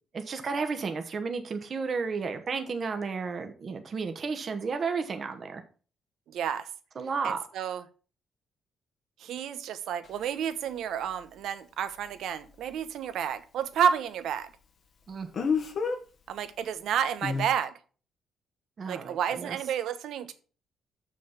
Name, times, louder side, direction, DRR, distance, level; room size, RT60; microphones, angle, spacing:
voice 1, 0.1-5.6 7.0-7.4 15.1-15.3 18.8-19.6, right 5 dB, 45° right, 6 dB, 1.3 m, -32 dB
voice 2, 6.3-6.6 7.2-7.8 9.2-14.5 16.3-17.7 18.9-20.3, right 8 dB, 75° right, 11 dB, 1.0 m, -30 dB
Speech, 10.0-10.1 15.3-16.0 17.2-17.5, left 5 dB, 60° left, 1.5 m, -28 dB
6.8 x 6.2 x 5.7 m, 0.38 s
cardioid pair, 90°, 0 cm